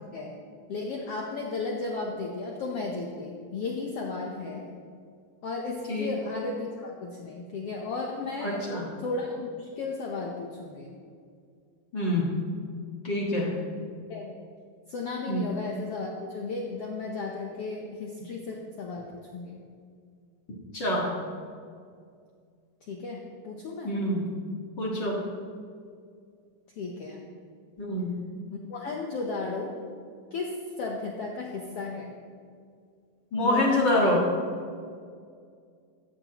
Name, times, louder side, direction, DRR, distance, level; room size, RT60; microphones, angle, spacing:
voice 1, 0.7-4.7 5.4-8.7 9.0-10.9 14.1-14.3 14.9-19.6 22.9-23.9 26.8-27.2 28.5-29.8 30.3-32.1 33.4-34.2, left 3 dB, 85° left, 0 dB, 1.3 m, -34 dB
voice 2, 8.4-8.9 11.9-12.4 13.0-13.6 15.3-15.4 20.7-21.1 23.8-24.3 24.8-25.2 27.8-28.1 33.3-34.2, left 1 dB, 40° left, -3 dB, 1.9 m, -26 dB
15.5 x 14.0 x 3.0 m, 2.2 s
omnidirectional pair, 4.2 m